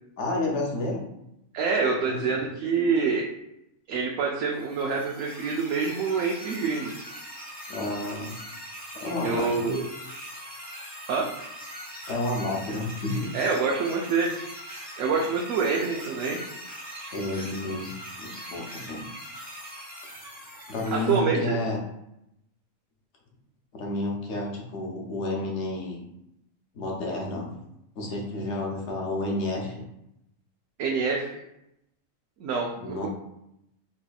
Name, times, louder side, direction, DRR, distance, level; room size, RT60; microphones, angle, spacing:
voice 1, 0.2-1.0 2.0-2.3 7.7-8.3 9.0-9.8 12.1-13.3 17.1-17.9 18.2-19.0 20.7-21.8 23.7-26.0 26.7-27.5 28.0-29.8 32.8-33.1, left 2 dB, 65° left, -1 dB, 1.0 m, -30 dB
voice 2, 1.5-3.3 3.9-7.0 9.2-9.8 11.1-11.3 13.3-14.3 15.0-16.4 20.9-21.6 30.8-31.4 32.4-33.1, right 5 dB, 75° right, -1 dB, 0.9 m, -26 dB
sound 1, 4.5-21.2, equal, 10° left, 0.5 m, -41 dB
4.0 x 2.8 x 2.3 m, 0.82 s
omnidirectional pair, 1.4 m